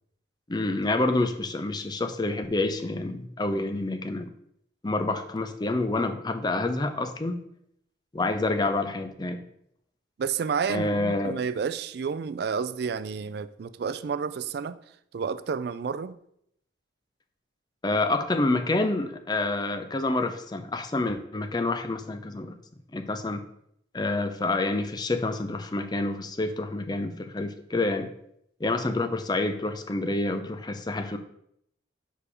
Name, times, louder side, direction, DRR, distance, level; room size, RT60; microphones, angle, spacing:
voice 1, 0.5-4.3 4.8-7.4 8.1-9.4 10.7-11.4 17.8-22.6 22.9-23.4 23.9-28.1 28.6-31.2, left 2 dB, 20° left, 7 dB, 0.5 m, -28 dB
voice 2, 10.2-14.8 15.1-16.2, right 6 dB, 55° right, 14 dB, 0.3 m, -30 dB
5.0 x 4.8 x 4.8 m, 0.73 s
head